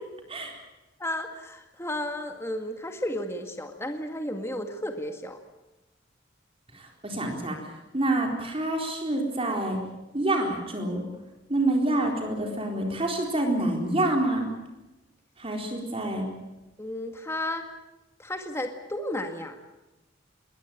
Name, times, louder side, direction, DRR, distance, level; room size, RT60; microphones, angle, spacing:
voice 1, 1.0-5.4 16.8-17.6 18.2-19.6, left 1 dB, 15° left, 5 dB, 1.9 m, -33 dB
voice 2, 6.7-7.6 7.9-9.8 10.1-11.0 11.5-14.5 15.4-16.3, right 1 dB, 30° right, 2 dB, 4.2 m, -27 dB
22.0 x 19.5 x 9.0 m, 0.99 s
head